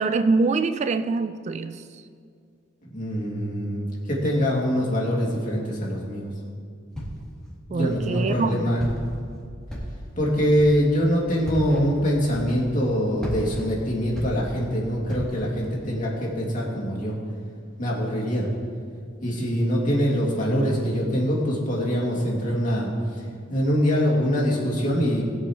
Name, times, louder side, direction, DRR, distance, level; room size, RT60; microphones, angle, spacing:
voice 1, 0.0-1.8 7.7-8.6, right 3 dB, 35° right, 11 dB, 0.3 m, -24 dB
voice 2, 2.9-6.3 7.7-8.8 10.2-17.1 17.8-18.5 19.2-22.9 23.5-25.2, equal, 40° left, -4 dB, 2.5 m, -24 dB
Walk footsteps, 6.9-7.4 7.9-8.4 8.8-9.3 9.7-10.2 10.5-10.9 11.4-11.8 12.3-12.8 13.2-14.7 15.1-15.5, equal, 5° left, 2.8 m, -34 dB
20.5 x 8.3 x 3.1 m, 2.3 s
head